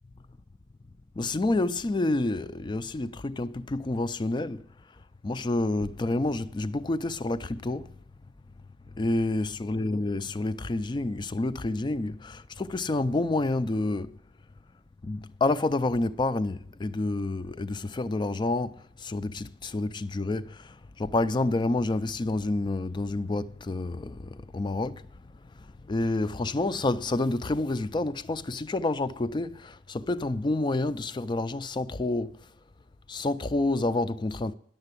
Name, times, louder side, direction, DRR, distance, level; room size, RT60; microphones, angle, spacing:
voice 1, 1.2-4.7 5.2-7.9 8.9-14.2 15.0-32.5 33.1-34.5, left 2 dB, 25° left, 0.4 m, -29 dB
10.5 x 6.8 x 8.2 m
head